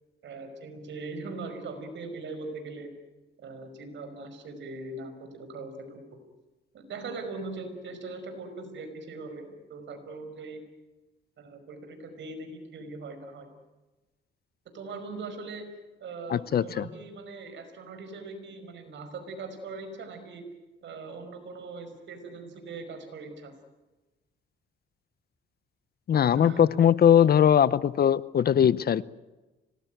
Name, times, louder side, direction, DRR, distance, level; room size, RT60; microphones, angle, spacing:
voice 1, 0.2-2.9 3.4-6.2 6.7-10.6 11.4-13.5 14.7-15.7 16.0-20.4 20.8-23.5 26.3-26.7, right 3 dB, 70° right, 5.4 m, -40 dB
voice 2, 16.3-16.9 26.1-29.0, left 9 dB, 50° left, 0.8 m, -21 dB
25.5 x 19.5 x 9.2 m
cardioid pair, 90°, 20 cm